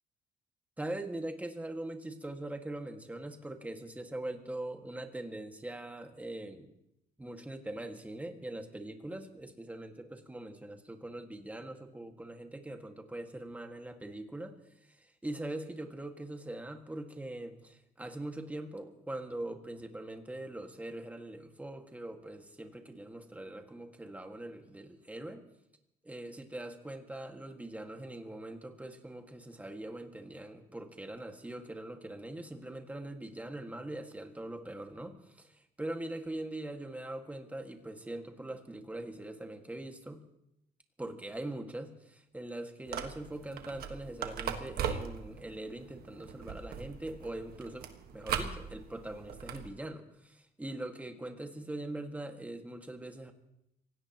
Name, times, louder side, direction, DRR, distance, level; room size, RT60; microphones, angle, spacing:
voice 1, 0.8-6.7 7.2-14.5 15.0-25.4 26.0-40.2 41.0-53.3, right 1 dB, 10° right, 4 dB, 1.9 m, -42 dB
sound 1, 42.9-49.7, right 8 dB, 65° right, 1.5 m, -40 dB
26.0 x 17.5 x 3.0 m, 0.81 s
cardioid pair, 110°, 17 cm